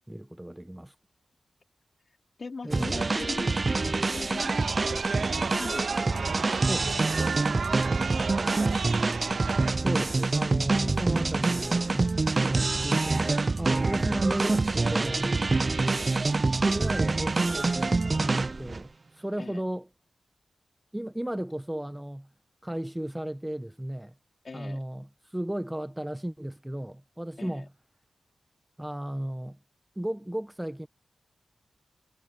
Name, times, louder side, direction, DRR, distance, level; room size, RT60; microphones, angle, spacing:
voice 1, 0.1-0.9 2.6-3.0 6.7-6.9 9.7-15.8 16.6-19.9 20.9-22.3 22.6-24.1 24.5-27.7 28.8-29.6 30.0-30.9, right 1 dB, 10° right, 0.9 m, -35 dB
voice 2, 2.4-7.2 7.4-9.2 14.0-14.3 15.8-16.3 19.4-19.6 24.4-24.8 27.4-27.7, left 4 dB, 45° left, 3.7 m, -43 dB
sound 1, 2.7-18.8, right 3 dB, 35° right, 0.3 m, -26 dB
Chatter, 4.4-9.7, right 5 dB, 70° right, 1.6 m, -34 dB
wide cardioid pair, 110°, 0 cm